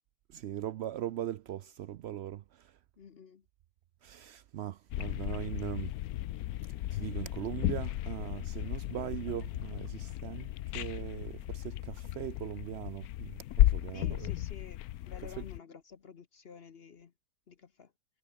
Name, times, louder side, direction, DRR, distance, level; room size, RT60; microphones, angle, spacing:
voice 1, 0.3-2.7 4.0-5.9 6.9-10.5 10.7-14.3 15.2-15.5, right 12 dB, 90° right, 0.5 m, -40 dB
voice 2, 3.0-3.4 13.9-14.8 15.1-17.1 17.5-17.9, left 6 dB, 45° left, 1.0 m, -51 dB
sound 1, 4.9-15.6, left 14 dB, 75° left, 1.1 m, -34 dB
omnidirectional pair, 1.7 m